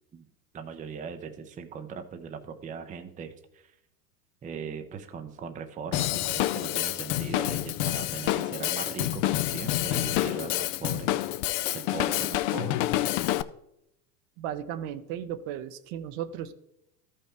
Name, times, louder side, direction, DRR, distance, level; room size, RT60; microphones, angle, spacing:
voice 1, 0.5-3.7 4.4-11.2 11.7-12.9, right 6 dB, 15° right, 7 dB, 0.6 m, -39 dB
Drum kit / Drum, 5.9-13.4, left 15 dB, 50° left, 0.5 m, -28 dB
voice 2, 14.4-16.5, right 10 dB, 55° right, 11 dB, 0.8 m, -35 dB
13.5 x 5.7 x 3.4 m, 0.82 s
hypercardioid pair, 100°, 50 cm